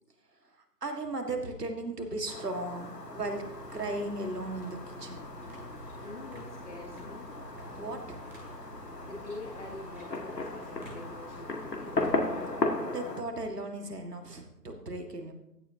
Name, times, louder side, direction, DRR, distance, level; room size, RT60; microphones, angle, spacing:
voice 1, 0.8-3.4 3.7-5.2 7.7-8.2 12.9-15.3, right 2 dB, 70° right, 5 dB, 1.9 m, -36 dB
Fireworks, 2.3-13.2, left 2 dB, 80° left, 1.8 m, -37 dB
sound 1, 3.2-12.7, right 1 dB, 5° right, 2.1 m, -49 dB
voice 2, 6.0-7.3 9.0-12.2 14.2-14.4, left 2 dB, 45° left, 0 dB, 1.6 m, -45 dB
15.0 x 10.5 x 2.8 m, 0.87 s
figure-of-eight pair, 160°, 48 cm